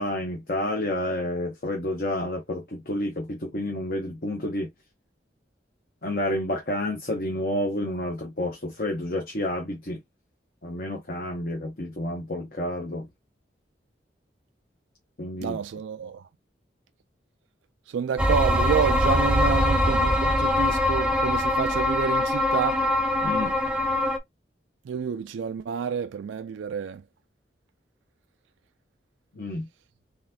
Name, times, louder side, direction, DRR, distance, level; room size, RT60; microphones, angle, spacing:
voice 1, 0.0-4.7 6.0-10.0 10.6-13.1 15.2-15.6 23.2-23.5 29.3-29.7, left 1 dB, 50° left, 0.9 m, -30 dB
voice 2, 15.4-16.2 17.9-22.8 24.9-27.0, right 6 dB, 90° right, 0.3 m, -29 dB
sound 1, 18.2-24.2, left 1 dB, 5° right, 0.4 m, -23 dB
4.0 x 3.4 x 2.7 m
head